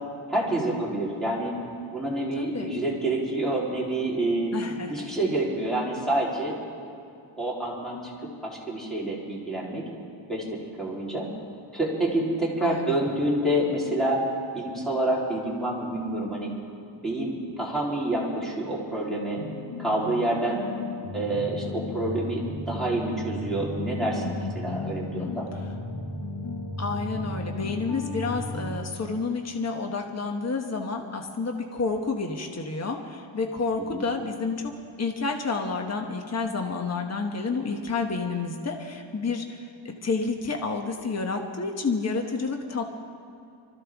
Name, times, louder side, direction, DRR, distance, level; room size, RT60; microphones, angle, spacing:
voice 1, 0.3-1.5 1.9-4.5 4.9-6.6 7.4-8.1 8.4-9.8 10.3-10.4 10.8-11.3 11.7-14.2 14.5-16.5 17.0-19.4 19.8-20.6 21.1-25.5 33.9-34.1, right 1 dB, ahead, -6 dB, 3.5 m, -27 dB
voice 2, 2.4-2.7 4.5-5.1 12.6-13.0 24.1-25.4 26.8-34.7 35.0-42.8, left 4 dB, 35° left, 3 dB, 1.1 m, -30 dB
sound 1, 19.3-28.8, left 1 dB, 70° left, 1.5 m, -35 dB
24.5 x 14.5 x 3.5 m, 2.6 s
wide cardioid pair, 120°, 48 cm